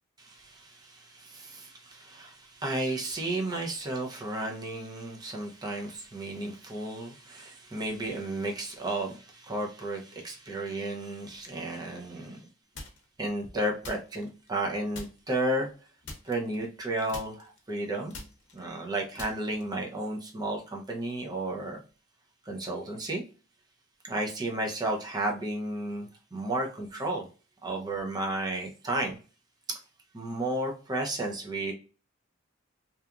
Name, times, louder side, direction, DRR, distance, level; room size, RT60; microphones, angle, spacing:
voice 1, 0.2-12.5 13.2-15.7 16.2-18.1 18.5-21.8 22.5-23.2 24.0-27.3 27.6-29.2 29.7-29.8 30.1-31.7, right 1 dB, 20° right, 0.5 m, -33 dB
sound 1, 12.7-13.2 13.8-14.6 14.9-15.4 16.0-16.8 17.1-19.9, left 2 dB, 55° left, 0.7 m, -45 dB
2.8 x 2.3 x 2.3 m
head